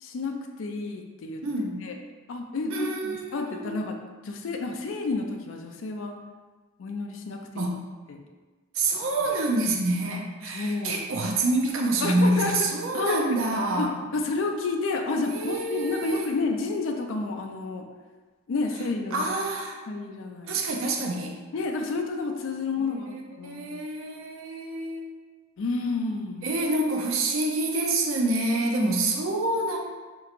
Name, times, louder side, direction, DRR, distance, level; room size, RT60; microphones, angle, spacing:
voice 1, 0.0-1.4 1.8-1.9 2.3-4.0 4.2-6.1 6.8-7.7 8.1-8.2 8.8-9.0 10.5-11.0 12.0-12.5 12.9-13.4 13.8-17.9 18.5-19.3 19.9-20.6 21.5-23.8 25.6-26.5 28.8-28.9, left 3 dB, 75° left, 3 dB, 0.4 m, -30 dB
voice 2, 1.4-1.8 2.7-3.8 7.6-7.8 8.7-13.9 15.2-16.3 19.1-19.8 20.4-21.4 22.8-25.1 26.4-29.8, right 2 dB, 85° right, 0 dB, 0.5 m, -27 dB
4.3 x 2.9 x 2.5 m, 1.3 s
head